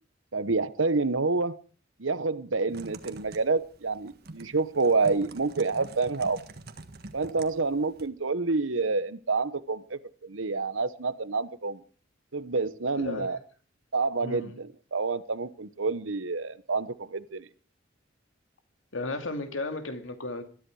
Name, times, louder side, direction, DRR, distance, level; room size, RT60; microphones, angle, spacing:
voice 1, 0.3-1.6 2.0-6.4 7.1-11.8 12.3-13.4 13.9-17.5, right 3 dB, 80° right, 15 dB, 1.1 m, -28 dB
Typing, 2.7-8.1, right 2 dB, 55° right, 1.6 m, -46 dB
voice 2, 13.0-13.3 14.2-14.6 18.9-20.4, left 2 dB, 80° left, 7 dB, 2.5 m, -34 dB
21.0 x 13.5 x 4.8 m, 0.40 s
head